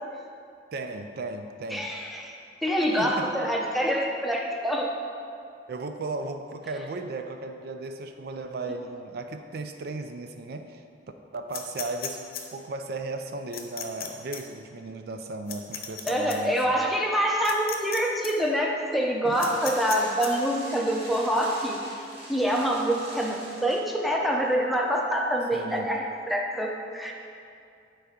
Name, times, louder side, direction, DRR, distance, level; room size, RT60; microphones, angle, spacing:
voice 1, 0.7-1.9 3.0-3.4 5.7-10.8 11.3-12.2 12.5-16.5 19.2-19.5 25.5-25.9, right 3 dB, 60° right, 7 dB, 0.4 m, -35 dB
voice 2, 1.7-2.4 2.6-4.9 16.1-21.8 22.3-27.1, equal, ahead, -1 dB, 0.7 m, -26 dB
sound 1, 11.5-12.4 13.5-14.1 14.3-14.4 15.5-16.4 17.4-18.0 18.2-18.3 19.4-20.3, left 9 dB, 55° left, 0.8 m, -35 dB
sound 2, 19.3-23.8, right 1 dB, 30° right, 1.7 m, -44 dB
9.3 x 3.8 x 5.0 m, 2.5 s
head